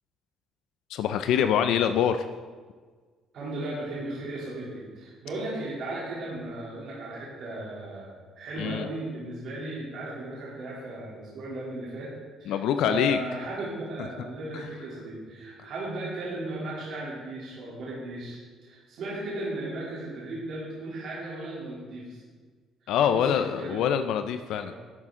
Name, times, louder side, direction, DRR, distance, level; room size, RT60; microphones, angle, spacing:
voice 1, 0.9-2.3 8.6-8.9 12.5-13.2 22.9-24.7, left 9 dB, 70° left, 9 dB, 0.4 m, -25 dB
voice 2, 3.3-22.2 23.0-24.1 24.6-24.8, right 2 dB, 60° right, -7 dB, 2.9 m, -36 dB
11.0 x 8.5 x 3.7 m, 1.5 s
cardioid pair, 140°, 0 cm